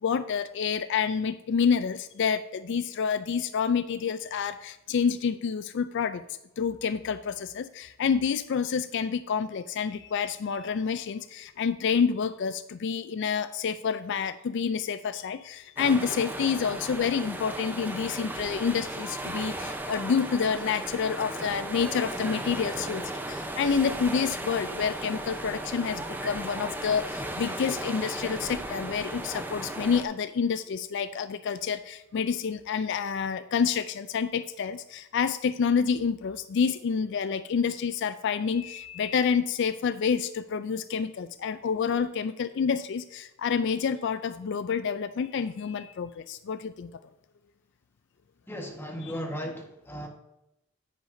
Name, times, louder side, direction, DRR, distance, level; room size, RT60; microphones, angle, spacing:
voice 1, 0.0-46.9 49.0-49.1, left 6 dB, 55° left, 12 dB, 0.3 m, -28 dB
sound 1, 15.8-30.0, right 1 dB, 10° right, 0.7 m, -36 dB
voice 2, 48.5-50.1, equal, 10° left, 1 dB, 1.4 m, -36 dB
9.6 x 9.3 x 2.7 m, 0.89 s
head